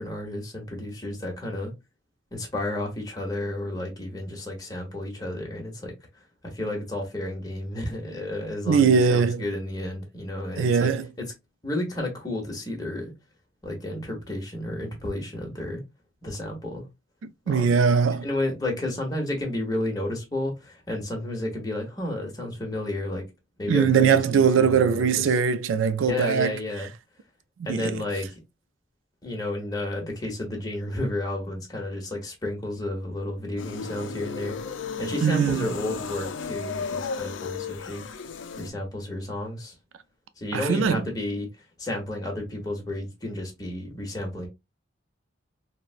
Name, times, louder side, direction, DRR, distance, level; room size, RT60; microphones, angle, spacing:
voice 1, 0.0-1.7 2.3-5.9 6.5-10.9 11.2-11.3 11.6-13.1 13.6-15.8 16.2-16.9 17.4-17.7 18.2-23.2 23.6-25.1 26.0-26.9 27.6-28.4 29.2-34.6 35.0-38.0 38.6-39.7 40.4-41.5 41.8-44.5, left 1 dB, 20° left, 1.0 m, -31 dB
voice 2, 8.7-9.4 10.6-11.1 17.2-18.3 23.7-26.6 27.7-28.0 35.2-35.7 40.5-41.1, right 6 dB, 80° right, 0.3 m, -21 dB
sound 1, 33.6-38.7, left 5 dB, 70° left, 0.4 m, -34 dB
4.0 x 2.1 x 2.4 m
head